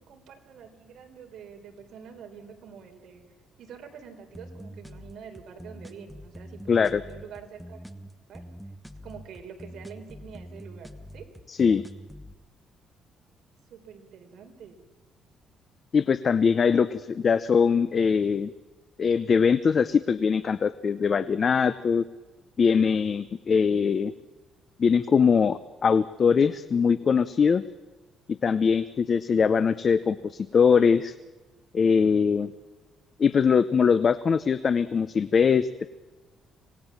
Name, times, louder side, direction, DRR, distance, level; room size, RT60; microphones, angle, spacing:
voice 1, 0.0-3.2 3.6-7.8 8.3-8.4 9.0-11.3 13.7-14.8 16.5-17.0, right 7 dB, 60° right, 4 dB, 3.8 m, -46 dB
sound 1, 4.3-12.3, equal, ahead, 1.3 m, -44 dB
voice 2, 6.7-7.0 11.5-11.8 15.9-16.9 17.2-18.5 19.0-22.0 22.6-24.1 24.8-27.6 28.4-31.1 31.7-32.5 33.2-35.9, left 6 dB, 35° left, 14 dB, 0.7 m, -22 dB
26.5 x 18.5 x 7.2 m, 1.2 s
cardioid pair, 155°, 0 cm